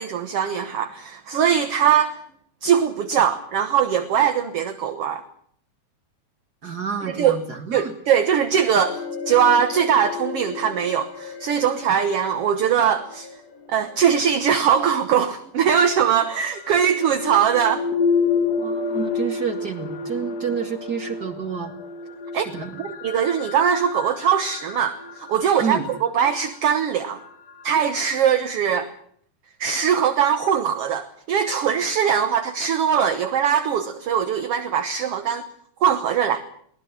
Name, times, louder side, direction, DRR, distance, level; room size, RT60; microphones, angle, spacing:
voice 1, 0.0-2.2 2.6-5.2 7.2-7.4 7.7-9.0 9.3-13.3 13.7-17.8 22.3-22.5 22.8-25.0 25.3-27.2 27.6-28.9 29.6-35.4 35.8-36.4, right 8 dB, 60° right, 8 dB, 2.0 m, -21 dB
voice 2, 6.6-7.9 18.6-21.8 22.3-22.8 25.6-25.9, right 6 dB, 35° right, 7 dB, 2.1 m, -29 dB
sound 1, 8.8-14.8 16.0-28.4, left 5 dB, 60° left, 2.9 m, -30 dB
23.0 x 19.0 x 7.4 m, 0.62 s
omnidirectional pair, 3.5 m